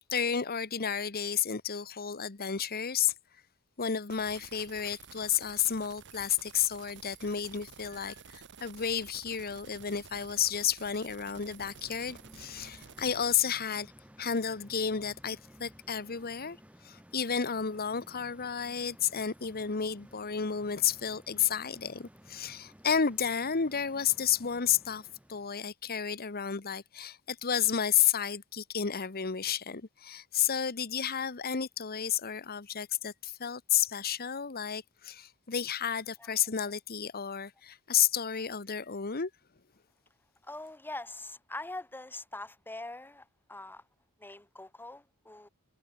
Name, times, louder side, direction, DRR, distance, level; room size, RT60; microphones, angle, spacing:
voice 1, 0.1-3.1 3.8-13.9 14.2-16.6 16.8-39.3, left 8 dB, 45° left, 1.2 m, -31 dB
sound 1, 4.1-13.4, right 6 dB, 55° right, 1.3 m, -52 dB
sound 2, 11.1-25.6, equal, 5° right, 1.9 m, -56 dB
voice 2, 40.4-43.8 44.2-45.5, left 2 dB, 10° left, 1.2 m, -43 dB
head